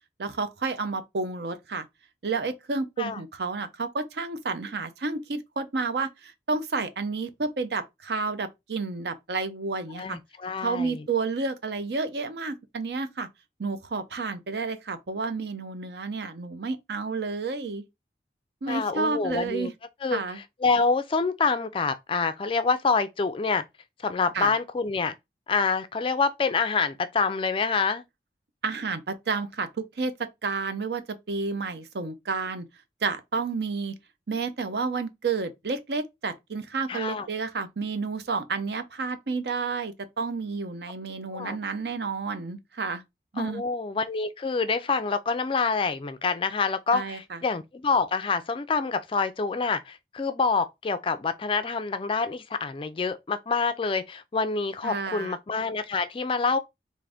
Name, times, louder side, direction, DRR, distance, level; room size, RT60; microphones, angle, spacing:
voice 1, 0.2-1.9 2.2-10.2 10.6-13.3 13.6-17.8 18.6-19.7 20.1-20.4 24.3-24.5 28.6-32.6 33.0-33.9 34.3-43.0 43.3-43.6 46.9-47.4 54.8-55.4, right 4 dB, 65° right, 0.6 m, -30 dB
voice 2, 10.0-11.0 18.7-19.7 20.0-23.6 24.0-25.1 25.5-28.0 36.9-37.3 41.3-41.6 43.4-56.6, left 4 dB, 30° left, 0.3 m, -27 dB
3.7 x 2.6 x 3.4 m
head